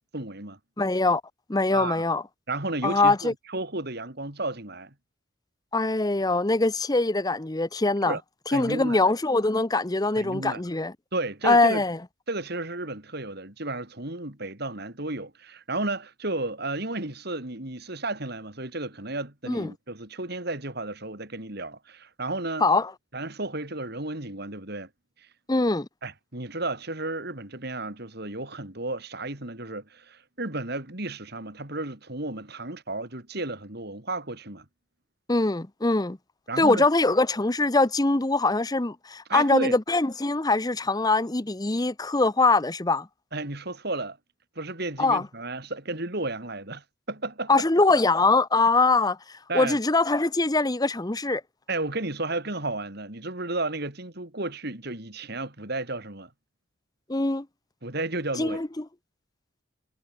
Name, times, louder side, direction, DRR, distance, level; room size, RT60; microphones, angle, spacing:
voice 1, 0.1-0.6 1.7-2.0 2.5-4.9 8.1-8.2 8.5-9.0 10.2-10.6 11.1-11.8 12.3-22.6 23.1-24.9 26.0-34.7 36.5-36.9 39.3-39.7 43.3-44.2 44.6-47.7 49.5-49.8 51.7-56.3 57.8-58.6, right 2 dB, 50° right, 3.6 m, -33 dB
voice 2, 0.8-1.2 1.5-2.2 2.8-3.3 5.7-8.1 8.5-10.9 11.4-12.0 19.5-19.7 22.6-22.9 25.5-25.9 35.3-36.2 36.6-43.1 45.0-45.3 47.5-49.2 49.5-51.4 57.1-57.5 58.4-58.9, left 3 dB, 20° left, 0.7 m, -23 dB
head